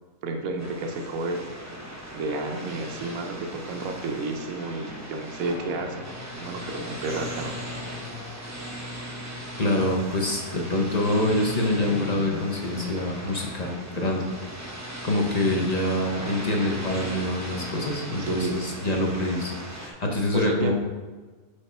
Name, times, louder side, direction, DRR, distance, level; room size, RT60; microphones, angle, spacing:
voice 1, 0.2-1.5 2.1-6.1 6.4-7.6 18.2-18.6 20.3-20.7, right 2 dB, 75° right, 4 dB, 1.2 m, -31 dB
sound 1, 0.6-19.9, right 1 dB, 15° right, 0.6 m, -38 dB
sound 2, 5.4-14.8, left 4 dB, 75° left, 1.3 m, -43 dB
voice 2, 9.6-14.3 14.7-20.7, left 1 dB, 35° left, 0 dB, 0.8 m, -26 dB
6.6 x 4.8 x 4.2 m, 1.3 s
omnidirectional pair, 1.5 m